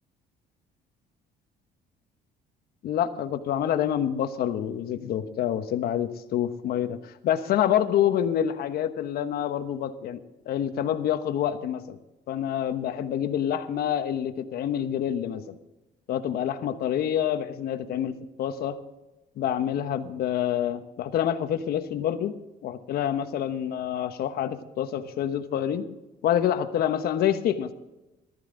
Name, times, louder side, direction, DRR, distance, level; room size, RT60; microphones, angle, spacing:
voice 1, 2.8-12.0 12.3-15.6 16.1-18.8 19.4-22.3 22.6-25.9 26.2-27.7, left 10 dB, 65° left, 9 dB, 1.1 m, -27 dB
14.0 x 13.0 x 3.9 m, 1.0 s
cardioid pair, 110°, 17 cm